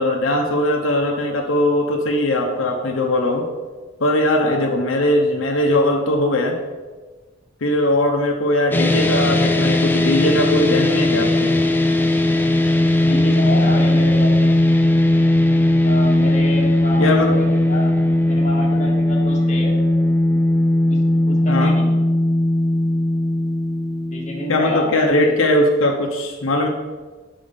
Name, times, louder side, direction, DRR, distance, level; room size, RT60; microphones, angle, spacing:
voice 1, 0.0-3.5 4.0-6.6 7.6-11.5 17.0-17.3 21.5-21.7 24.5-26.7, left 1 dB, 90° left, 1 dB, 0.8 m, -19 dB
voice 2, 4.4-4.7 13.0-14.5 15.8-17.9 18.2-19.7 20.9-21.0 21.2-22.0 24.1-24.9 25.1-25.3, left 1 dB, 40° left, -1 dB, 1.5 m, -28 dB
sound 1, 8.7-25.1, left 1 dB, 10° left, 0.5 m, -18 dB
5.3 x 5.0 x 5.4 m, 1.3 s
head